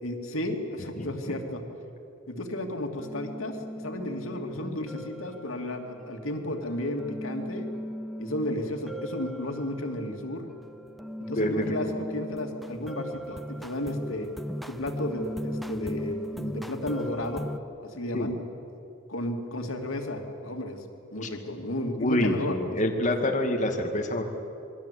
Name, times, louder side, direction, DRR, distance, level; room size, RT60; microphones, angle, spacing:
voice 1, 0.0-1.6 2.3-3.6 3.8-7.7 8.2-10.4 11.2-14.3 14.7-17.5 17.8-18.4 19.1-20.8 21.1-22.8 23.2-23.3, left 1 dB, 85° left, 3 dB, 2.7 m, -33 dB
voice 2, 1.0-1.4 4.5-5.0 11.4-11.8 18.1-18.3 21.2-21.3 22.0-24.2, left 1 dB, 35° left, 1 dB, 2.3 m, -28 dB
sound 1, 3.0-17.6, equal, ahead, 0.6 m, -38 dB
27.5 x 21.5 x 8.4 m, 2.8 s
head